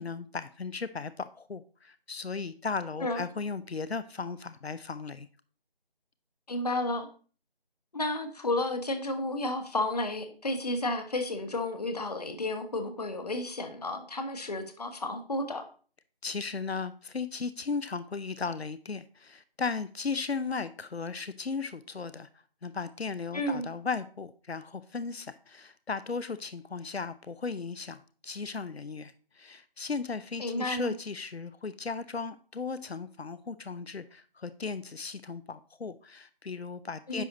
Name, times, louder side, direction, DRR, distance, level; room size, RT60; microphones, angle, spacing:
voice 1, 0.0-5.3 16.2-22.3 22.6-37.2, left 4 dB, 85° left, 0.7 m, -36 dB
voice 2, 6.5-7.1 7.9-15.7 23.3-23.7 30.4-30.9 37.1-37.2, left 2 dB, 40° left, 1.3 m, -32 dB
10.0 x 6.1 x 4.0 m
figure-of-eight pair, 165°, 30 cm